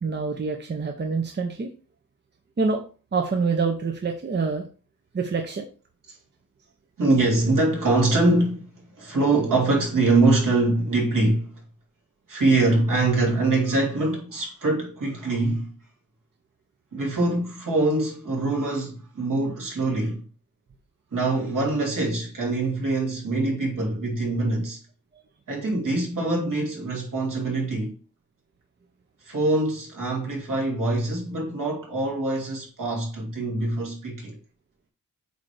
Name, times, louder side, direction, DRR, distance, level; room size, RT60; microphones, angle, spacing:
voice 1, 0.0-1.7 2.6-2.8 3.1-4.7 5.1-5.7, right 4 dB, 30° right, 0.7 m, -26 dB
voice 2, 7.0-11.5 12.3-15.7 16.9-20.2 21.1-24.8 25.5-27.9 29.2-34.4, right 2 dB, 65° right, 2.7 m, -24 dB
8.2 x 3.3 x 4.8 m
wide cardioid pair, 175°, 34 cm